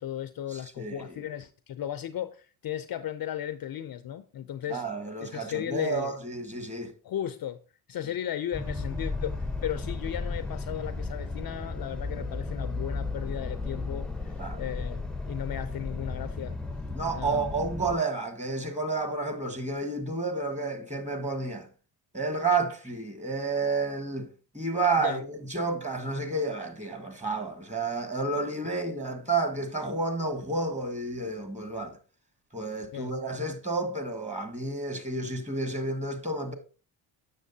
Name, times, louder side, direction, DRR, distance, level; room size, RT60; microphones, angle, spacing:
voice 1, 0.0-4.8 5.2-6.1 7.0-7.6 7.9-16.6 17.1-17.4 25.0-25.2 32.9-33.1, left 11 dB, 45° left, 0.5 m, -35 dB
voice 2, 0.5-1.2 4.7-6.9 14.4-14.6 16.9-21.7 22.1-24.3 24.5-32.0 32.5-36.5, right 3 dB, 15° right, 1.5 m, -30 dB
sound 1, 8.5-18.0, left 3 dB, ahead, 0.7 m, -34 dB
7.2 x 6.3 x 2.7 m
supercardioid pair, 65°, 48 cm